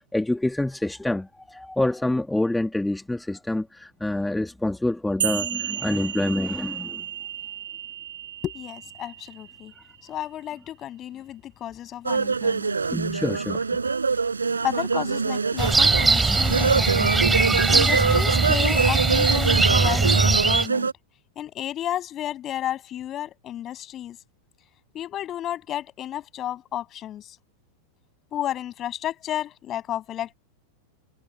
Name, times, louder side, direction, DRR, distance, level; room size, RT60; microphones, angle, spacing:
voice 1, 0.1-7.0 12.9-13.8, left 1 dB, 5° left, 2.3 m, -27 dB
sound 1, 5.2-10.2, right 11 dB, 60° right, 7.8 m, -33 dB
voice 2, 8.4-9.7 10.0-12.8 14.6-17.2 17.7-20.9 21.4-24.2 24.9-27.4 28.3-30.4, left 12 dB, 30° left, 8.0 m, -32 dB
sound 2, 12.1-20.9, right 4 dB, 75° right, 5.4 m, -24 dB
sound 3, 15.6-20.7, right 3 dB, 10° right, 4.1 m, -20 dB
figure-of-eight pair, 90°, 0 cm